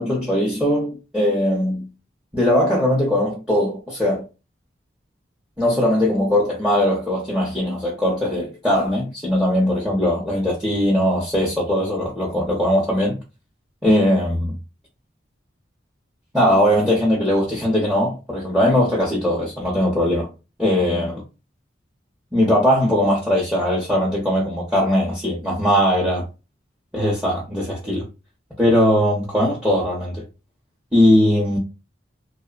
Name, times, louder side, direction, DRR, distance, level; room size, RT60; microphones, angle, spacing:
voice 1, 0.0-1.9 2.3-4.3 5.6-13.2 13.8-14.5 16.3-20.3 20.6-21.2 22.3-26.2 26.9-28.0 28.6-30.2 30.9-31.6, left 1 dB, 5° right, 0.6 m, -20 dB
2.8 x 2.0 x 2.3 m
head